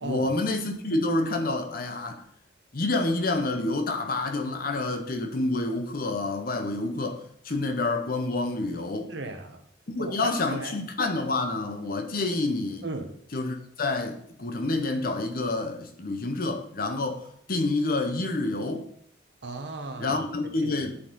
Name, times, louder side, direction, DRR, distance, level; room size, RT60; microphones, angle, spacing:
voice 1, 0.0-2.2 2.7-9.1 9.9-12.8 13.3-18.8 20.0-20.9, left 2 dB, 45° left, 0.8 m, -28 dB
voice 2, 9.1-9.6 10.0-10.8 12.8-13.1 19.4-20.2 20.6-20.9, right 2 dB, 65° right, 0.9 m, -35 dB
9.7 x 4.2 x 3.8 m
head